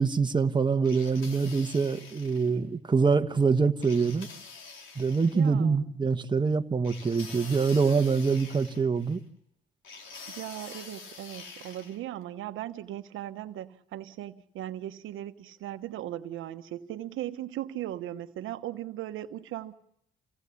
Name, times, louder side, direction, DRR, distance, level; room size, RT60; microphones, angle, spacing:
voice 1, 0.0-4.3 4.9-9.2, right 5 dB, 25° right, 1.3 m, -25 dB
sound 1, 0.8-2.6 3.8-5.5 6.8-9.2 9.8-12.0, left 4 dB, 80° left, 3.6 m, -46 dB
voice 2, 5.3-5.8 10.3-19.8, right 13 dB, 85° right, 1.2 m, -38 dB
27.0 x 18.0 x 8.4 m
cardioid pair, 90°, 20 cm